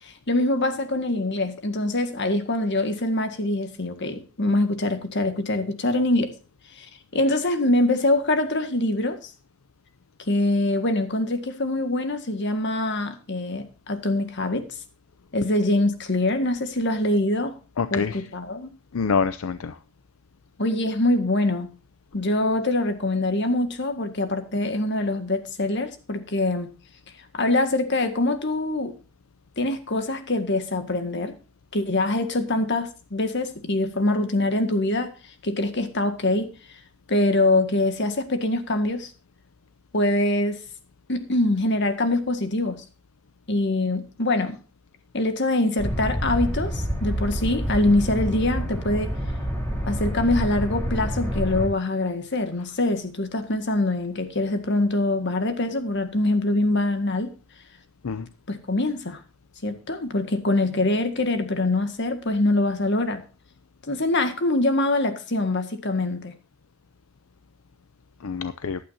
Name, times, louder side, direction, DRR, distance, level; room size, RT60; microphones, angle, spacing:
voice 1, 0.0-6.3 6.8-6.9 7.1-9.3 10.3-14.6 15.3-17.6 17.9-18.7 20.6-21.7 22.1-26.7 27.3-28.9 29.6-31.3 31.7-35.1 35.4-36.5 37.1-39.1 39.9-40.6 41.1-42.8 43.5-44.6 45.1-49.1 49.9-57.3 58.5-59.2 59.6-63.2 63.9-66.3, left 2 dB, 60° left, 8 dB, 1.9 m, -24 dB
voice 2, 17.8-18.2 18.9-19.7 58.0-58.3 68.2-68.8, left 5 dB, 85° left, 12 dB, 0.6 m, -26 dB
sound 1, 45.8-51.7, equal, 10° left, 4.1 m, -28 dB
15.0 x 11.5 x 2.8 m, 0.34 s
head